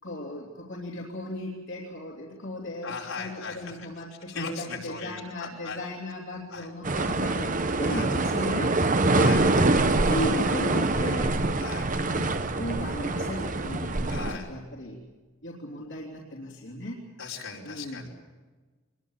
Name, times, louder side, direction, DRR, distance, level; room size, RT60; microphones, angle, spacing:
voice 1, 0.0-8.7 9.1-9.7 10.1-11.4 12.0-15.0 15.4-17.0 17.6-18.1, left 1 dB, 60° left, -4 dB, 3.3 m, -36 dB
voice 2, 2.8-3.9 4.3-5.8 6.5-6.7 7.8-8.1 9.1-9.4 11.6-11.9 14.0-14.5 17.2-18.1, left 4 dB, 75° left, -2 dB, 5.2 m, -37 dB
sound 1, 6.8-14.3, right 2 dB, 40° right, 1.1 m, -25 dB
25.0 x 21.5 x 7.4 m, 1.3 s
head